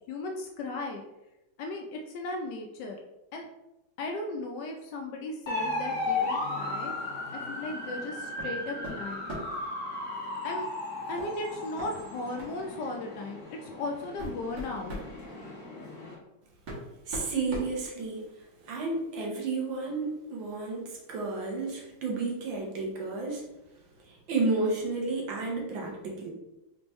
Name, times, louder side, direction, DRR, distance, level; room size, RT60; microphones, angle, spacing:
voice 1, 0.1-1.0 1.6-3.0 3.3-3.5 4.0-6.9 7.3-9.3 10.4-10.7 11.1-15.0, left 2 dB, 75° left, 2 dB, 1.0 m, -36 dB
sound 1, 5.5-16.1, left 2 dB, 40° left, 1.8 m, -36 dB
sound 2, 8.4-8.6 8.8-9.6 11.2-11.3 11.8-11.9 12.4-12.6 13.4-13.5 14.0-15.1 16.2-16.3 16.7-18.4, right 1 dB, 55° right, 1.7 m, -39 dB
voice 2, 17.1-23.4 24.0-26.3, right 3 dB, 75° right, -1 dB, 1.7 m, -32 dB
4.3 x 3.3 x 3.0 m, 0.94 s
omnidirectional pair, 2.1 m